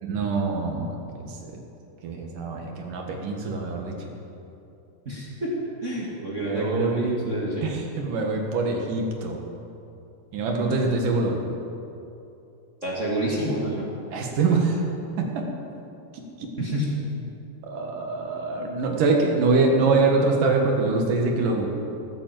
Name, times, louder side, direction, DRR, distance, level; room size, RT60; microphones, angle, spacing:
voice 1, 0.0-1.6 2.0-4.1 6.5-9.4 10.3-11.4 14.1-14.8 15.2-15.5 16.1-16.7 17.6-21.7, right 3 dB, 60° right, 1 dB, 2.7 m, -24 dB
voice 2, 5.0-5.5 5.8-7.6 12.8-13.8 16.6-16.9, right 1 dB, 30° right, -4 dB, 1.4 m, -28 dB
18.0 x 9.8 x 7.7 m, 2.8 s
omnidirectional pair, 5.1 m